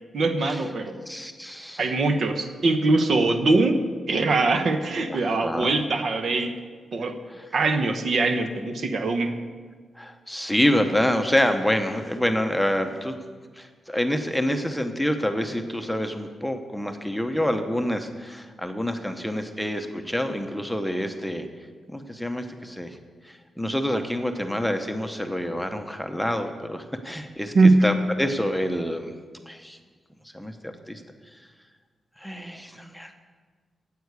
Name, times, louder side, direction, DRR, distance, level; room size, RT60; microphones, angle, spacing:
voice 1, 0.1-1.0 1.8-6.5 6.9-7.2 7.5-9.3 27.5-27.9, right 3 dB, 55° right, 7 dB, 1.0 m, -22 dB
voice 2, 1.1-1.9 5.1-5.7 7.4-7.5 10.0-13.2 13.6-21.5 21.9-23.0 23.2-27.5 27.8-29.1 29.5-29.8 30.3-31.0 32.2-33.1, left 1 dB, ahead, 6 dB, 0.8 m, -27 dB
9.4 x 8.3 x 8.1 m, 1.5 s
wide cardioid pair, 115°, 0 cm